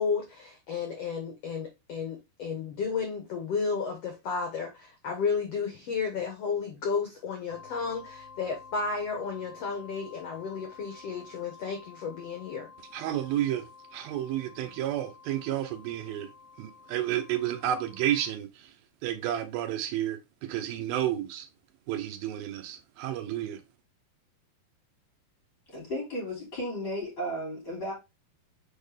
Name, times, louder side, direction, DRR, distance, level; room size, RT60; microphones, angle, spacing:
voice 1, 0.0-12.7, left 5 dB, 85° left, 1.3 m, -32 dB
sound 1, 7.5-18.3, left 5 dB, 55° left, 1.5 m, -51 dB
voice 2, 12.9-13.6 13.9-16.3 16.6-18.7 19.0-21.5 21.9-23.6, right 12 dB, 75° right, 2.6 m, -31 dB
voice 3, 25.7-27.9, equal, 30° left, 3.7 m, -34 dB
6.3 x 4.4 x 3.4 m
omnidirectional pair, 4.6 m